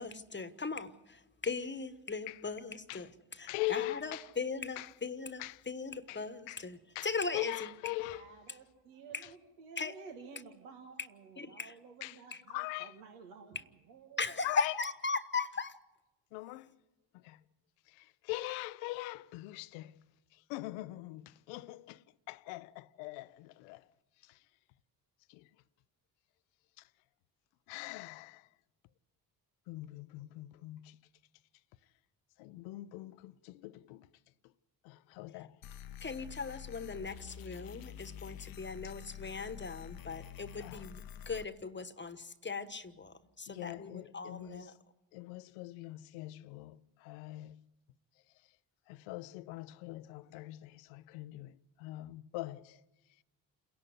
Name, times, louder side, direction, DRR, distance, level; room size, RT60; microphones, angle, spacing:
voice 1, 0.0-3.1 3.7-6.8 7.0-7.5 9.1-9.2 9.8-9.9 11.4-11.7 14.2-15.7 36.0-44.7, left 4 dB, 25° left, 1.2 m, -38 dB
voice 2, 3.5-4.3 4.8-5.0 5.4-5.7 6.1-6.7 6.9-8.3 9.2-9.3 12.0-13.0 14.4-14.8 16.3-16.8 17.1-17.5 17.8-20.0 20.3-23.9 24.2-24.5 25.3-25.6 26.8-26.9 27.7-28.6 29.7-31.0 31.8-31.9 32.4-34.5 34.8-35.6 38.8-38.9 40.6-40.9 43.5-44.8 45.1-47.7 48.2-48.6 48.9-53.2, left 19 dB, 85° left, 0.7 m, -43 dB
voice 3, 8.1-14.3, right 5 dB, 85° right, 1.7 m, -53 dB
sound 1, 35.6-41.5, left 10 dB, 50° left, 0.7 m, -48 dB
28.0 x 11.5 x 9.5 m
hypercardioid pair, 55°, 46 cm